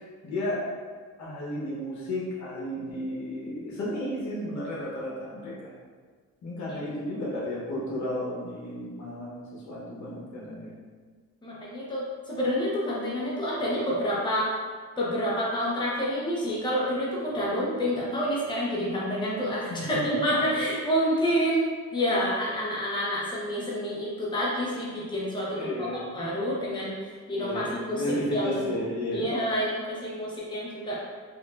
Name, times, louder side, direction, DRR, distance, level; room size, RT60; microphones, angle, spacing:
voice 1, 0.2-0.7 1.2-5.7 6.4-10.7 19.7-20.3 25.5-26.2 27.3-29.4, left 1 dB, 65° left, -6 dB, 1.2 m, -33 dB
voice 2, 11.4-14.5 15.0-21.6 21.9-25.9 26.1-28.0 28.3-28.6 29.1-31.0, equal, 15° left, -6 dB, 1.0 m, -28 dB
4.5 x 2.6 x 2.5 m, 1.5 s
cardioid pair, 90°, 30 cm